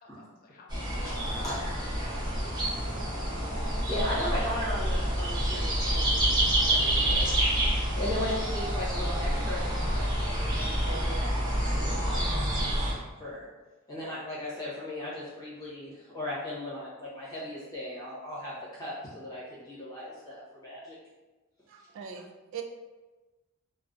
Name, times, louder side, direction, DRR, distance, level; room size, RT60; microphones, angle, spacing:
voice 1, 0.0-1.5 2.0-2.7, left 3 dB, 45° left, 0 dB, 0.4 m, -56 dB
sound 1, 0.7-12.9, right 1 dB, 20° right, 0.6 m, -28 dB
voice 2, 1.4-1.8 3.5-6.2 6.6-7.4 7.9-12.3 13.2-13.5 13.9-21.0, left 1 dB, 20° left, -9 dB, 0.8 m, -37 dB
voice 3, 21.7-22.6, right 8 dB, 65° right, 5 dB, 0.3 m, -41 dB
2.5 x 2.1 x 2.3 m, 1.2 s
head